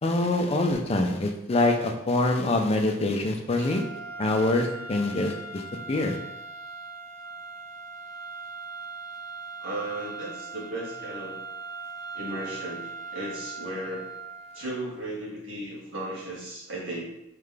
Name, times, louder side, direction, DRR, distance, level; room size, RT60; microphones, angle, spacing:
voice 1, 0.0-3.8 4.2-5.6 5.9-6.2, left 2 dB, 30° left, 4 dB, 0.4 m, -25 dB
sound 1, 3.5-15.0, right 4 dB, 45° right, 0.8 m, -40 dB
voice 2, 9.6-11.3 12.1-14.0 14.5-17.0, right 1 dB, 75° right, -5 dB, 1.6 m, -35 dB
3.8 x 3.2 x 3.3 m, 0.85 s
head